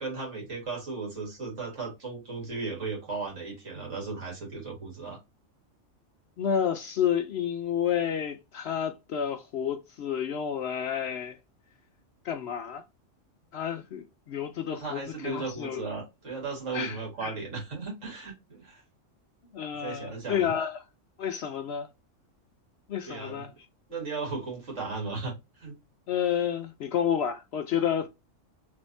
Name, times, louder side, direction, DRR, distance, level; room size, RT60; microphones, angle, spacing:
voice 1, 0.0-5.2 14.7-18.8 19.8-20.6 23.1-23.5 23.9-25.3 25.6-25.7, right 4 dB, 65° right, 2.2 m, -36 dB
voice 2, 6.4-11.4 12.2-12.8 13.5-15.9 16.7-17.3 19.5-20.8 21.2-21.9 22.9-23.5 26.1-28.1, left 8 dB, 65° left, 0.7 m, -30 dB
3.4 x 3.3 x 2.5 m
omnidirectional pair, 1.3 m